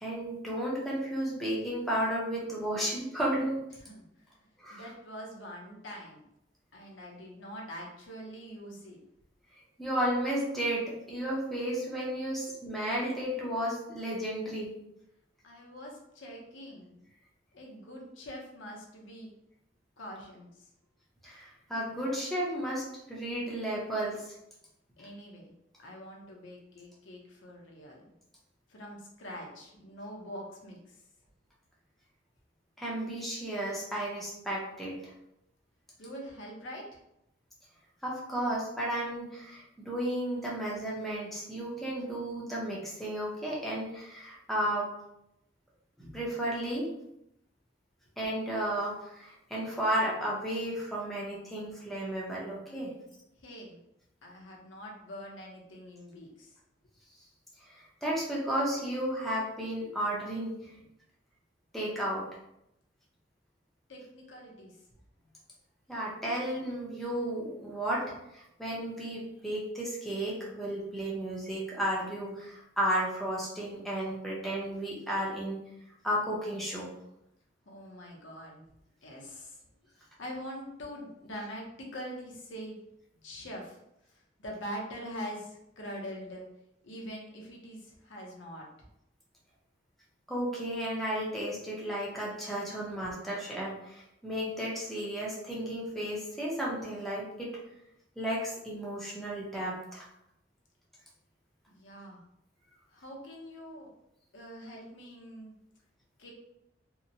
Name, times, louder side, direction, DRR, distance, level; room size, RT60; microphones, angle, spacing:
voice 1, 0.0-3.6 4.6-4.8 9.8-14.7 21.2-24.4 32.8-35.0 38.0-44.9 46.0-46.9 48.2-52.9 57.6-60.7 61.7-62.2 65.9-68.0 68.3-75.6 76.0-76.9 90.3-97.5 98.2-100.1, right 1 dB, ahead, -5 dB, 0.6 m, -33 dB
voice 2, 3.8-4.4 4.7-6.2 6.7-9.0 15.4-17.0 17.5-19.3 20.0-20.7 25.0-25.5 25.8-28.0 28.7-31.0 36.0-37.0 53.4-53.8 54.2-56.6 63.9-64.8 77.7-78.6 79.0-79.6 80.0-82.8 83.2-83.8 84.1-86.4 86.8-88.9 101.7-102.2 102.9-103.9 104.3-105.5 106.2-106.3, equal, 80° left, -1 dB, 0.7 m, -44 dB
2.8 x 2.1 x 2.6 m, 0.81 s
head